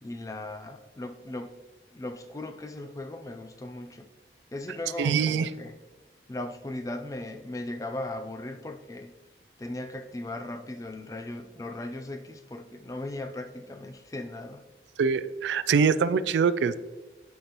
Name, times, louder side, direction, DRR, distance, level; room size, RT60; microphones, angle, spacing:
voice 1, 0.0-1.6 1.9-4.1 4.5-5.8 6.3-9.2 9.6-14.6, left 2 dB, 20° left, 7 dB, 0.4 m, -38 dB
voice 2, 5.0-5.5 15.0-16.7, right 6 dB, 85° right, 15 dB, 0.3 m, -24 dB
8.2 x 5.4 x 2.9 m, 1.2 s
head